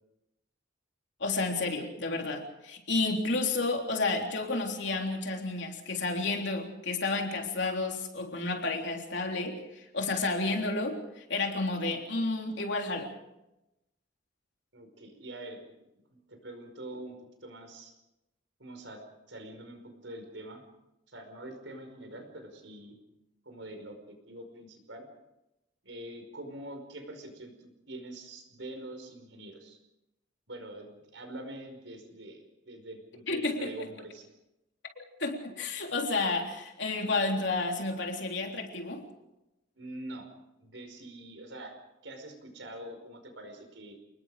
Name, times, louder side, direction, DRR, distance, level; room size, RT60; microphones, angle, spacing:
voice 1, 1.2-13.1 33.3-33.7 35.0-39.1, left 3 dB, 65° left, 2 dB, 3.6 m, -31 dB
voice 2, 14.7-15.6 16.1-17.9 18.6-19.0 19.3-20.6 21.1-23.0 23.5-25.0 25.8-29.8 30.5-34.3 39.8-40.3 40.6-41.8 42.0-43.9, right 1 dB, 75° right, 6 dB, 5.2 m, -44 dB
29.5 x 20.5 x 5.0 m, 0.91 s
head